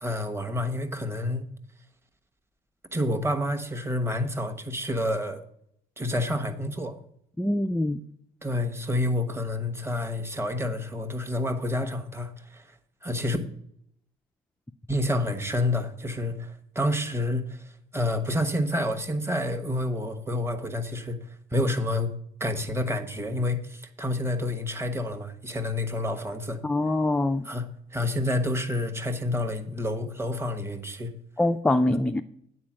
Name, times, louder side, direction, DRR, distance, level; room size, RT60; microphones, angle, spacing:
voice 1, 0.0-1.5 2.9-5.4 6.0-7.0 8.4-12.6 13.0-13.4 14.9-21.2 21.5-22.1 22.4-26.6 27.4-31.1, left 1 dB, 15° right, 7 dB, 1.1 m, -29 dB
voice 2, 7.4-8.0 26.6-27.5 31.4-32.2, left 1 dB, 5° left, 8 dB, 0.3 m, -24 dB
8.9 x 4.4 x 7.4 m, 0.70 s
cardioid pair, 110°, 17 cm